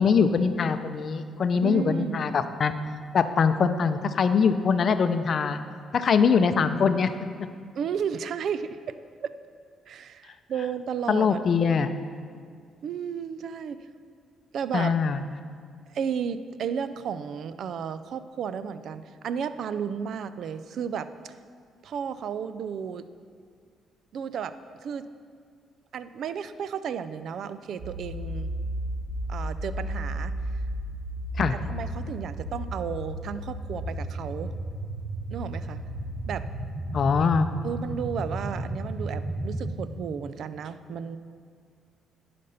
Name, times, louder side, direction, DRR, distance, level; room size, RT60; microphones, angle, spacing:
voice 1, 0.0-2.7 3.1-5.6 5.9-7.1 11.1-11.9 14.7-15.2 31.4-31.5 36.9-37.5, left 6 dB, 55° left, 10 dB, 0.5 m, -23 dB
voice 2, 1.5-2.2 7.8-9.3 9.9-11.4 12.8-13.8 14.5-15.0 15.9-21.3 21.8-23.1 24.1-25.1 25.9-28.5 29.3-30.3 31.5-34.5 35.3-35.8 36.3-36.5 37.6-41.2, right 7 dB, 65° right, 13 dB, 0.4 m, -33 dB
sound 1, 27.8-39.8, right 1 dB, 30° right, 1.4 m, -33 dB
10.5 x 5.1 x 5.6 m, 2.1 s
cardioid pair, 90°, 0 cm